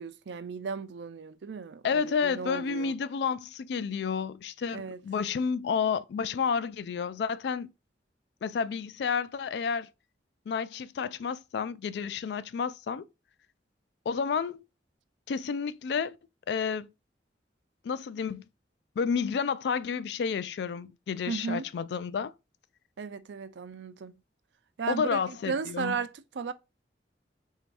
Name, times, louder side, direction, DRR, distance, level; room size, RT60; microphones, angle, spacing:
voice 1, 0.0-3.0 4.7-5.0 21.3-21.7 23.0-24.1 24.8-26.5, right 5 dB, 90° right, 0.4 m, -35 dB
voice 2, 1.8-7.7 8.4-9.9 10.5-13.1 14.1-14.6 15.3-16.2 16.5-16.9 17.8-18.4 19.0-22.3 24.9-26.0, left 6 dB, 70° left, 0.3 m, -30 dB
3.4 x 2.7 x 4.6 m
head